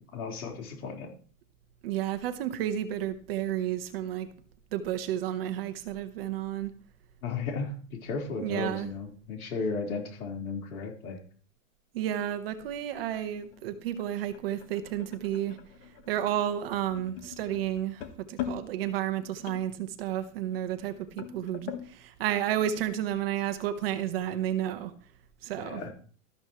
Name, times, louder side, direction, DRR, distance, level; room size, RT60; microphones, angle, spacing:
voice 1, 0.1-1.1 7.2-7.7 8.0-11.2 25.6-25.9, left 4 dB, 75° left, 4.5 m, -34 dB
voice 2, 1.8-4.3 4.7-6.7 8.4-8.9 11.9-15.6 16.1-24.9 25.4-25.8, right 11 dB, 40° right, 1.3 m, -31 dB
sound 1, 12.4-21.9, left 10 dB, 40° left, 1.6 m, -43 dB
13.0 x 12.5 x 3.2 m
supercardioid pair, 170°, 43 cm